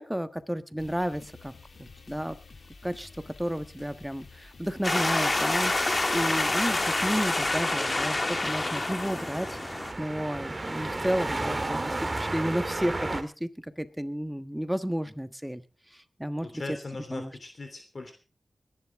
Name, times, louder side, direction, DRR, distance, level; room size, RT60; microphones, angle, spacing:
voice 1, 0.0-1.5 2.1-2.4 2.8-9.6 10.0-15.6 16.2-16.5 17.1-17.3, equal, 5° right, 11 dB, 1.4 m, -32 dB
sound 1, 0.8-7.7, left 4 dB, 70° left, 2.8 m, -50 dB
sound 2, 4.8-9.9, left 2 dB, 35° left, 2.0 m, -27 dB
sound 3, 5.6-13.2, right 2 dB, 35° right, 1.8 m, -35 dB
voice 2, 16.4-18.1, left 3 dB, 55° left, 6 dB, 3.1 m, -39 dB
21.5 x 11.0 x 3.6 m, 0.33 s
cardioid pair, 45°, 0 cm